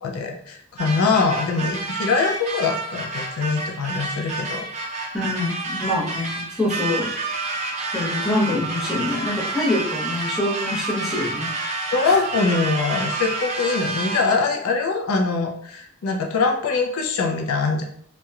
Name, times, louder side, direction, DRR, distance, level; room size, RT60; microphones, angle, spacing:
voice 1, 0.0-4.7 11.9-17.8, left 4 dB, 90° left, 2 dB, 0.4 m, -23 dB
sound 1, 0.8-14.5, right 3 dB, 30° right, 0.4 m, -29 dB
voice 2, 5.1-7.1 7.9-11.5 12.0-12.2, left 1 dB, ahead, -8 dB, 0.7 m, -25 dB
2.9 x 2.1 x 2.3 m, 0.65 s
head